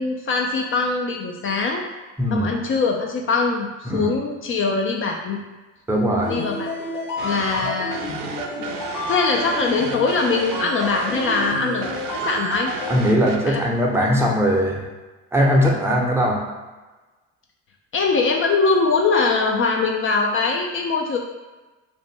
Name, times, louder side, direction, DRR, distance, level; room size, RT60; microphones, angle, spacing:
voice 1, 0.0-1.8 2.3-5.4 6.3-6.7 7.2-8.0 8.6-8.8 9.1-12.7 13.5-13.6 17.9-21.2, left 4 dB, 35° left, 1 dB, 0.4 m, -22 dB
voice 2, 5.9-6.3 12.9-14.8 15.3-16.4, equal, 5° right, -2 dB, 0.6 m, -19 dB
sound 1, 6.2-13.1, left 2 dB, 85° left, 0.8 m, -31 dB
sound 2, 7.2-13.4, right 5 dB, 65° right, 0.5 m, -33 dB
2.6 x 2.1 x 3.2 m, 1.2 s
hypercardioid pair, 65°, 37 cm